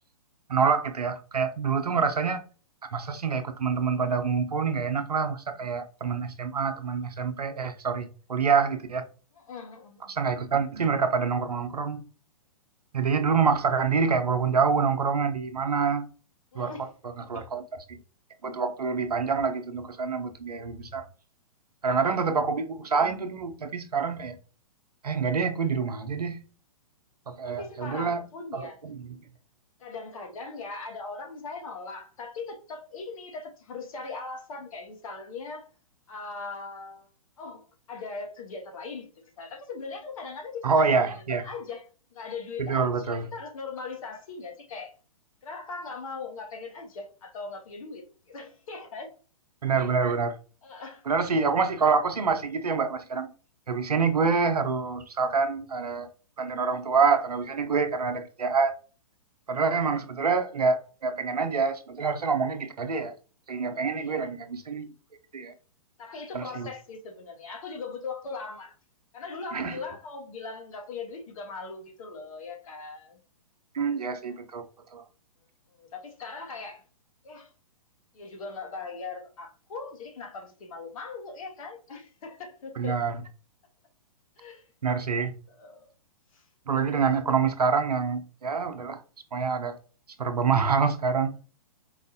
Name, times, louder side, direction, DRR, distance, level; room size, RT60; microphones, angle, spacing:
voice 1, 0.5-2.4 2.9-9.0 10.1-12.0 12.9-16.1 16.5-16.7 17.0-17.6 17.9-18.0 18.4-21.0 21.8-24.4 25.0-26.4 27.3-28.2 28.5-29.2 40.6-41.4 42.6-43.3 49.6-50.4 51.1-53.3 53.7-56.1 56.4-58.8 59.5-63.1 63.5-64.9 65.3-65.5 66.3-66.7 69.5-69.8 73.7-74.6 74.9-75.0 82.8-83.2 84.8-85.3 86.7-89.0 89.3-89.8 90.2-91.4, right 5 dB, 90° right, 0.7 m, -26 dB
voice 2, 9.3-10.2 16.5-16.9 17.2-17.6 22.1-22.3 27.5-28.8 29.8-35.7 36.1-37.1 37.4-39.1 39.4-41.9 42.1-44.9 45.4-49.1 50.6-51.0 59.7-59.8 63.9-64.3 66.0-68.8 69.1-73.2 75.8-76.8 77.2-77.5 78.1-83.0 84.4-84.6 85.0-85.1 85.5-85.9 86.3-86.4, left 4 dB, 65° left, 1.2 m, -40 dB
4.7 x 2.4 x 2.6 m
hypercardioid pair, 125°, 19 cm